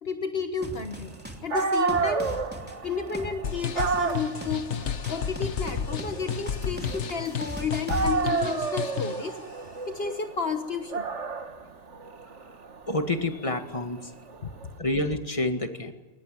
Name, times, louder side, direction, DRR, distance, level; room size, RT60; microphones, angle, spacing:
voice 1, 0.0-1.2 1.4-2.3 2.8-4.7 5.1-9.4 9.9-11.1, left 5 dB, 60° left, 6 dB, 1.5 m, -32 dB
sound 1, 0.6-8.2, equal, 10° right, 2.9 m, -39 dB
Dog, 1.2-1.3 1.5-7.5 7.9-14.7, right 4 dB, 85° right, 1.9 m, -31 dB
sound 2, 3.4-9.3, left 8 dB, 80° left, 1.3 m, -33 dB
voice 2, 12.9-14.1 14.8-15.9, left 2 dB, 30° left, 6 dB, 2.1 m, -28 dB
22.5 x 19.5 x 9.2 m, 1.2 s
omnidirectional pair, 1.2 m